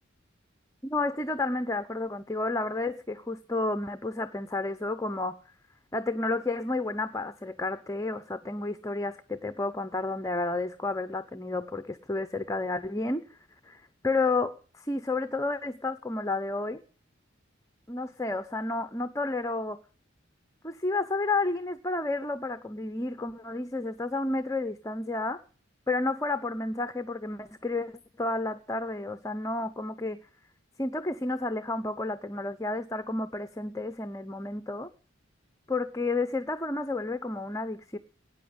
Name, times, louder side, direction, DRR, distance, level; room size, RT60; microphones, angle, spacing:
voice 1, 0.8-5.4 5.9-13.4 13.6-16.8 17.9-19.8 20.6-25.4 25.9-30.2 30.8-34.9 35.7-38.0, left 2 dB, 15° left, 10 dB, 0.7 m, -31 dB
18.0 x 9.6 x 7.3 m, 0.41 s
head